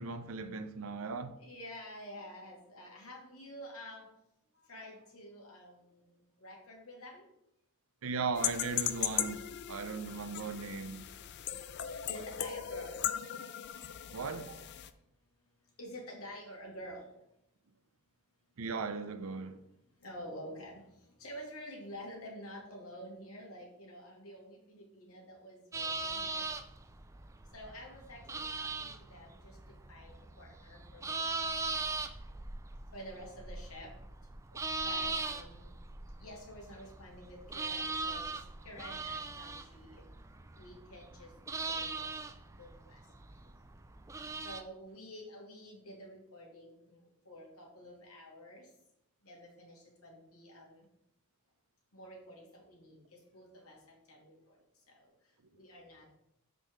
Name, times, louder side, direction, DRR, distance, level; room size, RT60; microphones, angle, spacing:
voice 1, 0.0-1.4 8.0-11.1 14.1-14.6 18.6-19.6 34.5-34.6, right 4 dB, 65° right, 0.6 m, -38 dB
voice 2, 1.4-4.1 4.5-7.3 12.1-13.5 15.4-17.1 19.8-26.5 27.5-31.6 32.9-33.9 34.8-35.6 36.2-40.0 40.5-42.3 42.6-43.1 44.3-48.7 49.2-50.9 51.9-56.2, equal, 75° left, 2.5 m, -50 dB
sound 1, 8.3-14.9, left 10 dB, 50° left, 0.4 m, -38 dB
sound 2, 25.7-44.6, right 3 dB, 15° right, 0.4 m, -40 dB
5.6 x 5.1 x 6.4 m
head